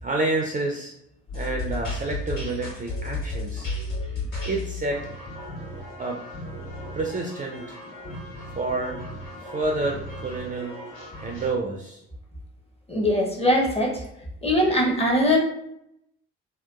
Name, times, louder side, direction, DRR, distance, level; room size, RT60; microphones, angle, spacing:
voice 1, 0.0-0.9 1.3-3.7 4.4-5.0 6.0-6.2 7.0-7.8 8.6-9.0 9.4-10.8 11.2-12.0, right 2 dB, 25° right, 0 dB, 0.4 m, -29 dB
sound 1, 1.3-11.5, left 2 dB, 65° left, 1.4 m, -34 dB
voice 2, 12.9-14.0 14.4-15.4, left 1 dB, 15° left, 0 dB, 0.8 m, -21 dB
2.8 x 2.2 x 2.3 m, 0.80 s
hypercardioid pair, 50°, 35 cm